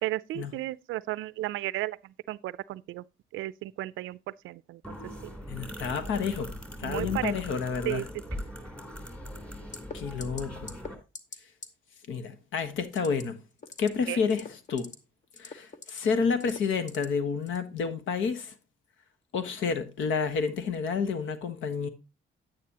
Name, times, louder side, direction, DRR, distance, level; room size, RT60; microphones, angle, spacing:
voice 1, 0.0-3.0 3.3-5.0 5.2-5.3 6.8-7.3 7.9-8.0 14.1-14.2, right 16 dB, 80° right, 0.4 m, -34 dB
sound 1, 4.8-10.9, equal, 5° left, 3.2 m, -40 dB
voice 2, 5.5-6.5 6.8-8.1 9.9-10.7 12.1-13.4 13.8-14.9 15.4-18.5 19.3-21.9, left 5 dB, 80° left, 1.3 m, -30 dB
sound 2, 9.7-9.9 10.2-10.4 10.7-10.9 11.1-11.4 11.6-11.7 12.9-13.2 13.6-13.9 14.3-14.9 15.3-16.0 16.4-17.0 17.5-17.6, left 4 dB, 40° left, 1.2 m, -41 dB
9.5 x 9.3 x 2.9 m
cardioid pair, 90°, 20 cm